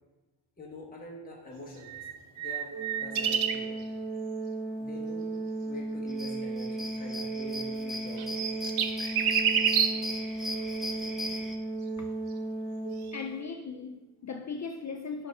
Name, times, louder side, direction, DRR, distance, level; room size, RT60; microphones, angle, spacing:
voice 1, 0.6-2.1 2.4-3.9 4.8-5.3 5.6-8.6 10.3-11.0 11.3-11.5 12.4-12.5, left 1 dB, 20° left, 1.3 m, -46 dB
sound 1, 1.8-3.7 7.9-10.1 13.1-13.2, right 8 dB, 75° right, 0.8 m, -28 dB
Organ, 2.7-13.6, right 2 dB, 20° right, 1.5 m, -35 dB
sound 2, 6.1-11.6, left 1 dB, ahead, 0.8 m, -39 dB
voice 2, 13.1-15.3, left 5 dB, 40° left, 0.4 m, -38 dB
10.5 x 3.6 x 5.3 m
wide cardioid pair, 150°, 49 cm